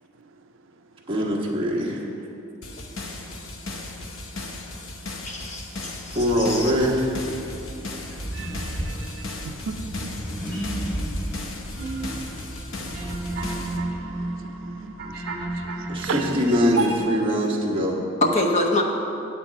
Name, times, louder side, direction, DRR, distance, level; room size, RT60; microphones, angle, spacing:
voice 1, 1.1-2.0 6.1-7.1 15.9-17.9, equal, 25° right, -3 dB, 1.2 m, -22 dB
sound 1, 2.6-13.8, left 2 dB, 70° left, 0.8 m, -37 dB
voice 2, 5.2-6.7 18.2-18.8, left 1 dB, 30° left, 1 dB, 0.7 m, -25 dB
Accelerating revving vroom, 6.1-13.5, equal, ahead, 1.6 m, -34 dB
voice 3, 7.9-10.3 12.8-16.2, right 5 dB, 65° right, 5 dB, 0.4 m, -39 dB
sound 2, 11.8-17.1, right 2 dB, 50° right, 1.0 m, -31 dB
8.8 x 4.5 x 7.4 m, 2.8 s
head